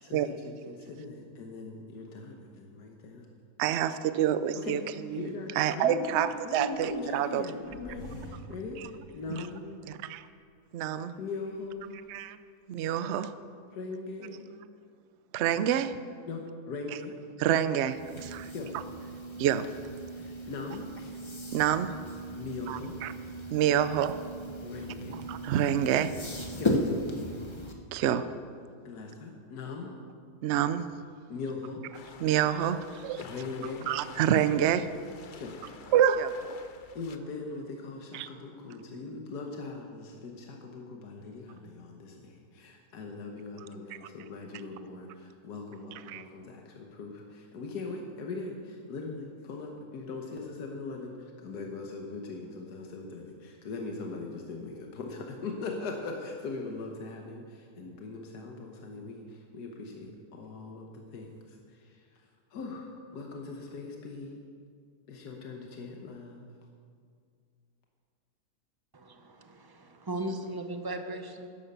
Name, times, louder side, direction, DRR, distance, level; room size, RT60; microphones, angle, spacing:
voice 1, 0.0-3.3 4.6-4.8 5.1-9.8 11.2-12.0 13.7-14.5 16.3-17.1 18.5-18.8 20.1-21.1 22.3-23.0 24.6-25.2 26.5-26.8 28.9-29.9 31.3-31.8 33.2-33.9 35.3-35.6 36.9-62.0 62.5-64.4 65.1-66.4, left 3 dB, 85° left, 1 dB, 1.7 m, -40 dB
voice 2, 3.6-5.3 5.5-7.5 8.8-8.9 9.3-9.5 9.9-10.3 10.7-11.1 12.1-12.4 12.7-13.3 15.3-16.0 17.4-18.5 19.4-19.7 21.5-22.0 22.7-23.1 23.5-24.2 25.1-26.1 27.9-28.3 30.4-30.9 32.2-33.2 33.9-34.9 35.9-36.4 38.1-38.3 44.0-44.1 45.9-46.2, right 10 dB, 65° right, 13 dB, 0.7 m, -27 dB
sound 1, 6.0-7.1 7.6-10.0 10.4-10.5 11.2-12.0, right 1 dB, 50° left, 2.3 m, -49 dB
sound 2, 17.9-27.7, equal, 20° left, 0.9 m, -36 dB
sound 3, 31.9-37.2, left 6 dB, 65° left, 0.4 m, -50 dB
voice 3, 68.9-71.5, right 1 dB, 25° right, 6 dB, 0.5 m, -37 dB
11.5 x 10.5 x 6.7 m, 2.2 s
omnidirectional pair, 1.7 m